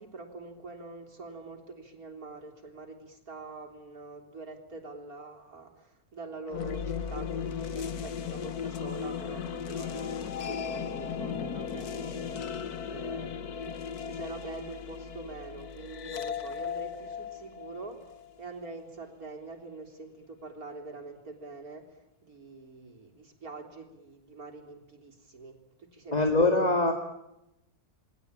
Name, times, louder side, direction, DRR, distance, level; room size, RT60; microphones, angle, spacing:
voice 1, 0.0-13.7 14.1-18.0 18.4-26.7, right 3 dB, 70° right, 3 dB, 4.0 m, -45 dB
sound 1, 6.5-18.6, left 7 dB, 85° left, 1.7 m, -36 dB
voice 2, 26.1-26.9, left 2 dB, 25° left, 4 dB, 2.1 m, -23 dB
29.0 x 20.0 x 8.8 m, 0.89 s
omnidirectional pair, 1.6 m